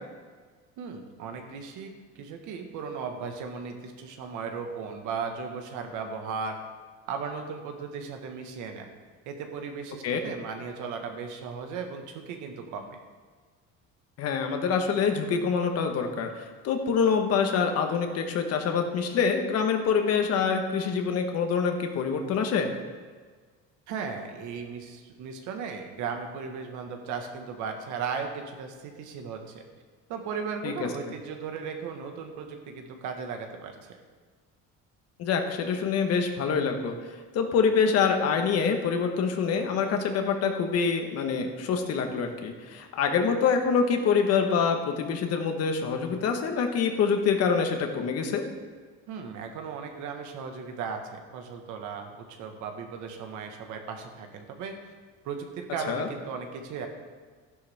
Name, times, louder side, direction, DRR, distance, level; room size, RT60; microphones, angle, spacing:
voice 1, 0.8-6.6 7.1-8.9 9.2-13.0 23.9-29.6 30.1-34.0 49.1-54.9 55.2-56.9, right 5 dB, 70° right, 4 dB, 1.7 m, -36 dB
voice 2, 14.2-22.7 30.6-30.9 35.2-36.9 37.3-48.4 55.9-56.1, left 6 dB, 50° left, 5 dB, 1.4 m, -26 dB
13.0 x 11.0 x 3.6 m, 1.5 s
cardioid pair, 145°, 31 cm